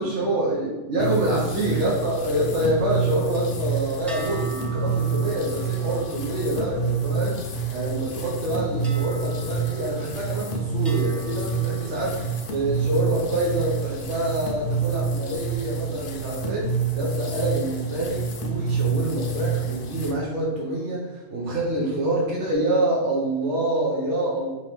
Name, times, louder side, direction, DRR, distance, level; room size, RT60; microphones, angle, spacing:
voice 1, 0.0-24.5, right 1 dB, 90° right, -5 dB, 1.2 m, -26 dB
sound 1, 1.0-20.1, right 5 dB, 60° left, 0.7 m, -28 dB
sound 2, 4.1-7.7 8.8-10.4 10.8-12.5, right 1 dB, ahead, 0.5 m, -44 dB
5.3 x 2.8 x 3.5 m, 1.2 s
omnidirectional pair, 1.2 m